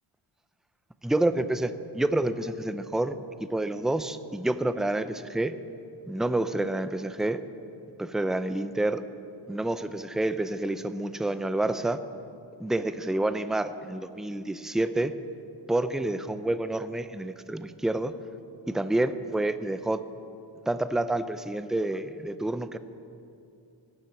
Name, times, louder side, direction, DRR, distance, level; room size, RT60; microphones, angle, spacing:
voice 1, 1.0-3.2 3.5-5.5 6.1-7.4 8.0-9.0 9.5-12.0 12.6-15.1 15.7-18.1 18.7-20.0 20.7-22.8, right 1 dB, ahead, 11 dB, 0.5 m, -28 dB
16.5 x 7.4 x 9.4 m, 2.6 s
wide cardioid pair, 105°, 48 cm